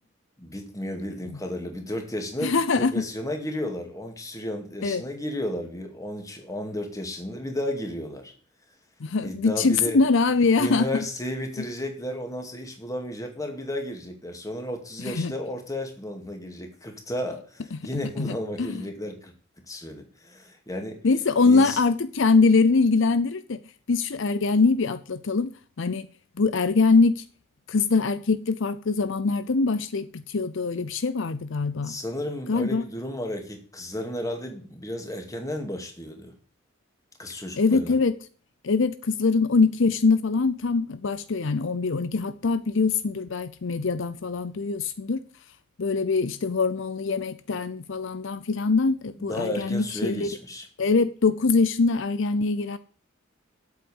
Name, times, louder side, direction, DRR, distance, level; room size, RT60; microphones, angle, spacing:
voice 1, 0.4-8.3 9.2-10.0 10.6-19.3 19.7-21.0 21.4-21.8 31.8-36.3 37.2-38.0 49.2-50.7, left 1 dB, 15° left, 2.3 m, -33 dB
voice 2, 2.4-2.9 4.8-5.0 9.0-10.9 15.1-15.3 17.9-18.8 21.0-23.6 23.9-25.5 25.8-26.1 26.4-27.2 27.7-32.0 32.5-32.8 37.6-38.1 38.6-45.2 45.8-50.3 50.8-52.8, left 4 dB, 65° left, 0.6 m, -23 dB
8.3 x 8.0 x 8.0 m
head